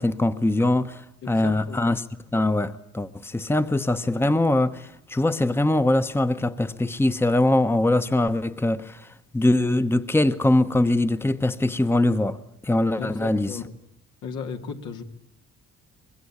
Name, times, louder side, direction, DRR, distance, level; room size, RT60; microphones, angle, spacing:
voice 1, 0.0-2.0 2.3-9.1 9.3-12.4 12.6-13.6, left 2 dB, 10° left, 0.9 m, -22 dB
voice 2, 1.2-1.8 13.0-13.7 14.2-15.0, left 6 dB, 80° left, 2.5 m, -35 dB
24.5 x 21.0 x 8.6 m
cardioid pair, 90°, 30 cm